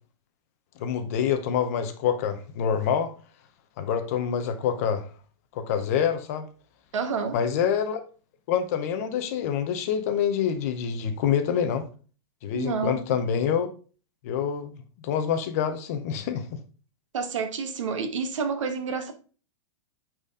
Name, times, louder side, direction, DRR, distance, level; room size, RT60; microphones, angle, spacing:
voice 1, 0.8-3.1 3.8-5.1 5.5-6.5 7.3-8.0 8.5-11.8 12.4-13.7 14.2-16.6, left 8 dB, 30° left, 0.7 m, -26 dB
voice 2, 6.9-7.4 12.5-13.0 17.1-19.1, right 5 dB, 75° right, 1.5 m, -29 dB
8.9 x 4.2 x 3.6 m
supercardioid pair, 180°, 16 cm